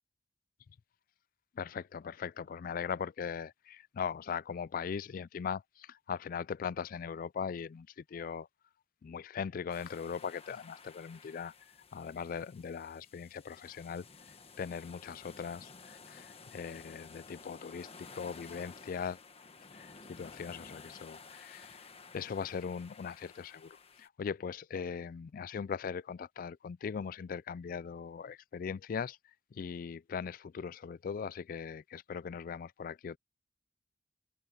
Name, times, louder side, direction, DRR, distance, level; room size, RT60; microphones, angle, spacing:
voice 1, 1.6-8.5 9.0-11.5 11.9-14.0 14.6-19.2 19.7-21.8 22.1-29.2 29.5-33.2, left 6 dB, 50° left, 0.3 m, -40 dB
sound 1, 9.7-24.1, left 4 dB, 35° left, 1.4 m, -54 dB
open air
head